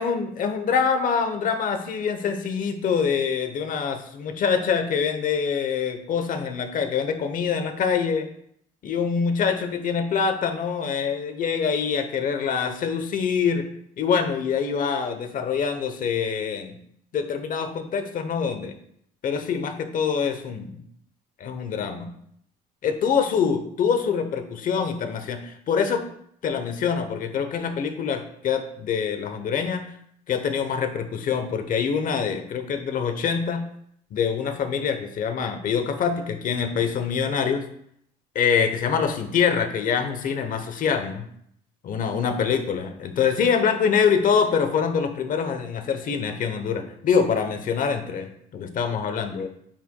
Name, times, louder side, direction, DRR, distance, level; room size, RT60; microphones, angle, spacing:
voice 1, 0.0-8.3 8.8-13.7 14.0-16.7 17.1-18.7 19.2-20.8 21.4-22.1 22.8-26.0 26.4-29.9 30.3-33.6 34.1-37.6 38.3-41.3 41.9-49.5, left 6 dB, 55° left, 7 dB, 0.9 m, -25 dB
9.0 x 4.8 x 2.3 m, 0.68 s
cardioid pair, 110°, 17 cm